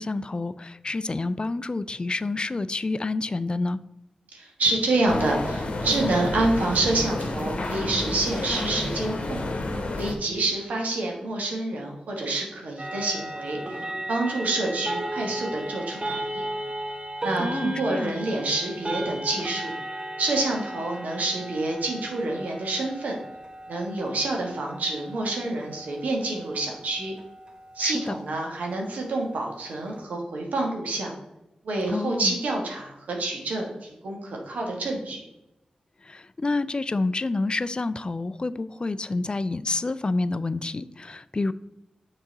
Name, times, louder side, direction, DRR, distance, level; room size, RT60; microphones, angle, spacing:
voice 1, 0.0-3.8 17.4-18.1 27.8-28.2 31.9-32.3 36.1-41.5, left 3 dB, 40° left, 16 dB, 0.3 m, -28 dB
voice 2, 4.3-9.4 9.9-16.5 17.2-19.7 20.2-23.2 23.7-27.1 27.7-31.1 31.6-35.2, right 2 dB, 85° right, 0 dB, 1.3 m, -28 dB
sound 1, 5.1-10.1, left 2 dB, 55° left, 1.0 m, -30 dB
sound 2, 12.8-30.0, right 1 dB, 35° right, 1.0 m, -36 dB
6.6 x 4.0 x 4.0 m, 0.93 s
cardioid pair, 45°, 3 cm